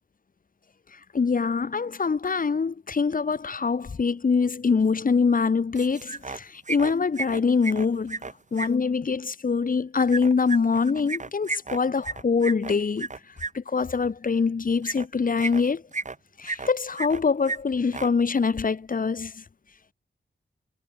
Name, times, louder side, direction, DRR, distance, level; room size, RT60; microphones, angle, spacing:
voice 1, 1.1-8.2 8.5-13.1 13.5-15.8 16.4-19.4, left 5 dB, 45° left, 0.9 m, -24 dB
sound 1, 5.8-6.4 6.7-8.7 10.1-13.5 14.8-15.1 15.4-16.2 16.4-17.2 17.5-17.6 17.9-18.1, right 4 dB, 40° right, 1.5 m, -33 dB
wide cardioid pair, 110°, 20 cm